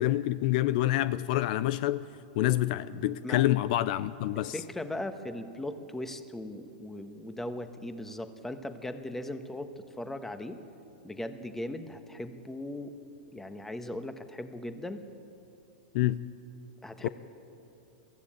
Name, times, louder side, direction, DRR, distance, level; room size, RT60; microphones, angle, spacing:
voice 1, 0.0-2.1 2.4-4.5 15.9-16.2 17.0-17.1, left 15 dB, 55° left, 0.6 m, -27 dB
voice 2, 4.3-10.6 11.0-12.9 13.3-15.0 16.8-17.1, left 1 dB, 5° left, 1.4 m, -38 dB
23.0 x 15.0 x 9.0 m
hypercardioid pair, 120°, 5 cm